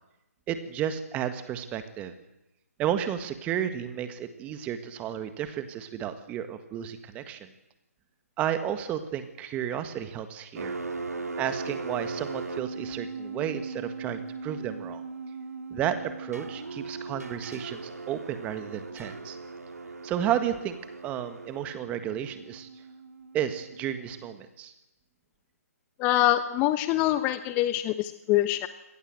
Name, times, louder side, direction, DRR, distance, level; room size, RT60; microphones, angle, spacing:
voice 1, 0.5-2.1 2.8-7.5 8.4-10.8 11.4-15.0 15.7-17.8 18.1-19.4 20.0-20.8 21.0-22.7 23.3-24.7, right 10 dB, 15° right, 10 dB, 1.7 m, -32 dB
sound 1, 10.6-24.4, right 4 dB, 80° right, 2.7 m, -39 dB
voice 2, 26.0-28.7, left 14 dB, 20° left, 12 dB, 1.0 m, -24 dB
24.5 x 18.5 x 7.8 m, 0.92 s
figure-of-eight pair, 145°, 8 cm